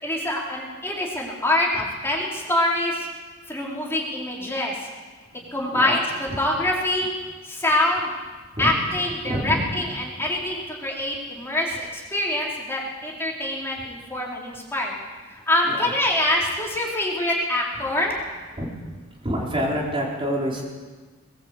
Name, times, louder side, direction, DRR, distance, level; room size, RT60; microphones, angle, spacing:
voice 1, 0.0-3.1 3.5-4.8 5.5-6.0 6.4-7.1 7.4-8.1 8.6-14.9 15.3-18.1, left 1 dB, 10° left, -3 dB, 4.7 m, -25 dB
voice 2, 9.3-9.6 18.6-18.7 19.2-20.6, equal, 25° right, -3 dB, 4.5 m, -26 dB
21.5 x 20.5 x 8.4 m, 1.3 s
head